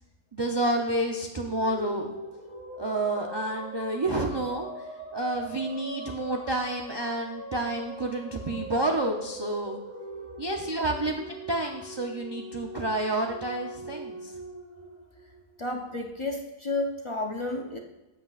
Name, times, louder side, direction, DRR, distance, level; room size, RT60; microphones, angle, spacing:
voice 1, 0.3-2.2 2.8-9.8 10.4-14.4, right 1 dB, 35° right, 1 dB, 0.4 m, -29 dB
sound 1, 1.3-15.7, right 1 dB, 10° right, 1.8 m, -42 dB
voice 2, 15.6-17.8, left 2 dB, 40° left, 2 dB, 0.4 m, -31 dB
13.5 x 7.8 x 2.4 m, 1.0 s
omnidirectional pair, 1.5 m